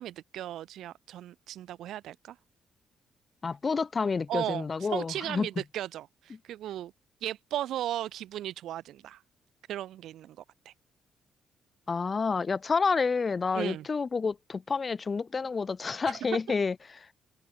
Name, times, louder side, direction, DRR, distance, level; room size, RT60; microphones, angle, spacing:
voice 1, 0.0-2.4 4.3-6.9 7.2-9.2 9.7-10.4 10.7-10.8 13.5-13.8, right 12 dB, 80° right, 0.4 m, -36 dB
voice 2, 3.4-5.5 11.9-17.0, left 4 dB, 35° left, 1.2 m, -29 dB
cardioid pair, 90°, 0 cm